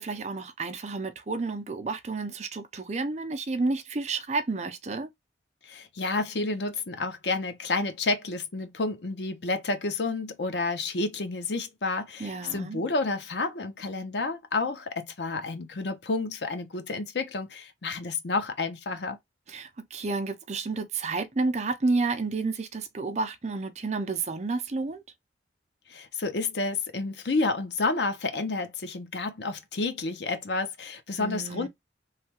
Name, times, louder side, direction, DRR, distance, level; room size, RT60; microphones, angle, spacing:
voice 1, 0.0-5.1 12.2-12.8 19.5-25.0 31.2-31.7, right 3 dB, 40° right, 0.5 m, -30 dB
voice 2, 5.6-19.2 25.9-31.7, left 3 dB, 70° left, 0.7 m, -30 dB
3.3 x 2.3 x 2.8 m
head